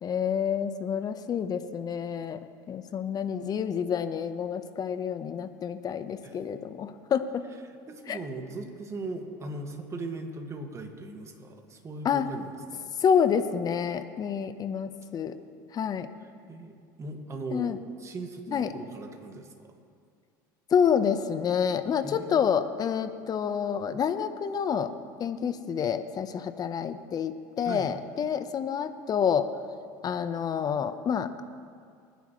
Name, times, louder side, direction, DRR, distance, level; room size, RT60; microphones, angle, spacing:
voice 1, 0.0-2.4 2.7-7.4 8.1-8.2 12.0-12.3 13.0-15.4 15.7-16.1 17.5-17.8 18.5-18.7 20.7-24.9 25.2-29.5 30.0-31.3, left 7 dB, 40° left, 11 dB, 1.0 m, -28 dB
voice 2, 7.7-12.9 16.2-19.7 22.0-22.5 27.6-27.9, right 2 dB, 30° right, 3 dB, 2.0 m, -39 dB
24.0 x 10.5 x 3.2 m, 2.3 s
hypercardioid pair, 85°, 10 cm